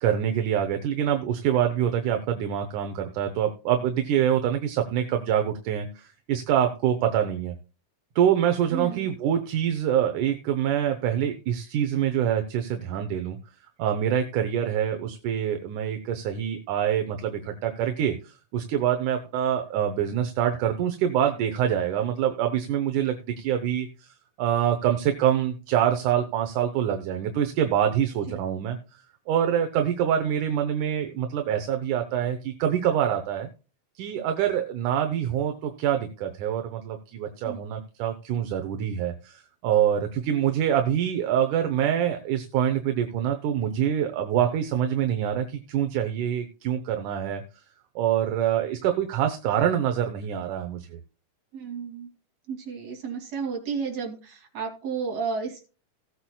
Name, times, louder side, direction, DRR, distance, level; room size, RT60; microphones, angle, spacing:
voice 1, 0.0-7.6 8.2-13.4 13.8-28.8 29.3-33.5 34.0-47.4 48.0-51.0, right 9 dB, 80° right, 6 dB, 2.4 m, -25 dB
voice 2, 8.7-9.1 28.3-28.4 37.4-37.6 51.5-52.1 52.5-55.7, right 5 dB, 55° right, 1 dB, 4.0 m, -32 dB
17.0 x 8.6 x 2.3 m, 0.34 s
omnidirectional pair, 3.6 m